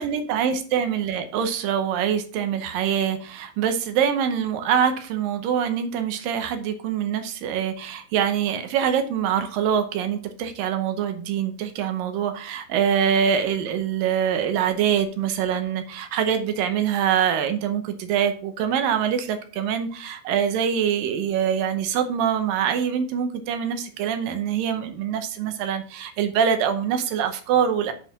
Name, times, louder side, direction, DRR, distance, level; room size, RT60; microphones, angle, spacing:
voice 1, 0.0-27.9, right 8 dB, 70° right, 8 dB, 2.4 m, -24 dB
7.9 x 4.8 x 5.9 m, 0.41 s
omnidirectional pair, 4.5 m